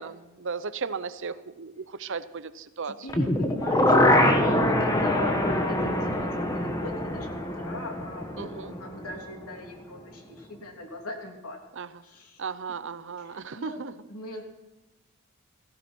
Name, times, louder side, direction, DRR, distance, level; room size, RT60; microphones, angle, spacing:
voice 1, 0.0-2.9 8.4-8.7 11.8-11.9 12.4-13.9, right 5 dB, 55° right, 14 dB, 0.7 m, -35 dB
voice 2, 2.8-11.6 12.0-12.4 12.7-12.8 13.2-13.8 14.1-14.4, left 1 dB, 80° left, 2 dB, 3.1 m, -40 dB
sound 1, 3.1-9.1 9.4-9.5, left 1 dB, 15° left, 1.3 m, -24 dB
17.0 x 15.0 x 4.5 m, 1.1 s
head